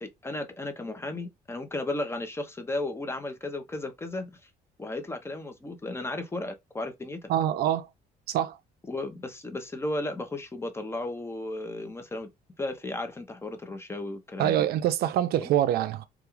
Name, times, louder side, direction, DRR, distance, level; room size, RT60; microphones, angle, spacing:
voice 1, 0.0-4.3 4.8-7.3 8.9-12.3 12.6-14.7 15.4-15.5, left 2 dB, 15° left, 0.5 m, -34 dB
voice 2, 7.3-7.9 8.3-8.6 14.4-16.1, right 11 dB, 70° right, 0.4 m, -25 dB
2.4 x 2.2 x 3.0 m
cardioid pair, 110°, 17 cm